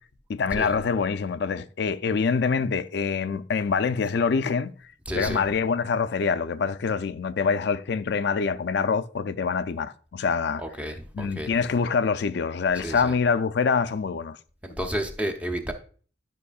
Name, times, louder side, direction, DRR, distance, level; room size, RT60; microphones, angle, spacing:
voice 1, 0.3-4.7 5.1-10.6 11.1-14.4, left 5 dB, 60° left, 0.4 m, -25 dB
voice 2, 5.1-5.5 10.6-11.6 12.7-13.1 14.6-15.7, right 1 dB, 5° right, 0.7 m, -31 dB
11.0 x 5.3 x 2.4 m
head